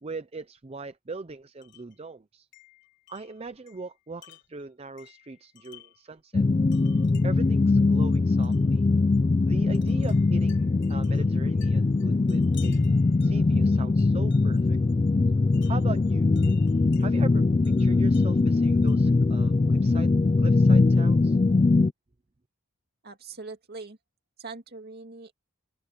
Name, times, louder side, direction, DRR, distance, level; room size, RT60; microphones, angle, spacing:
voice 1, 0.0-2.5 3.1-6.5 7.2-8.8 9.4-12.8 13.2-14.8 15.7-16.3 17.0-20.1 20.4-21.4, right 3 dB, 25° right, 0.6 m, -40 dB
Wind chime, 1.6-2.0 2.5-6.1 6.7-7.5 8.4-8.7 9.7-14.7 15.5-17.1 17.6-19.2, left 14 dB, 55° left, 4.1 m, -55 dB
sound 1, 6.3-21.9, left 3 dB, 25° left, 0.3 m, -22 dB
voice 2, 23.0-24.0 24.4-25.3, right 4 dB, 45° right, 2.4 m, -41 dB
open air
head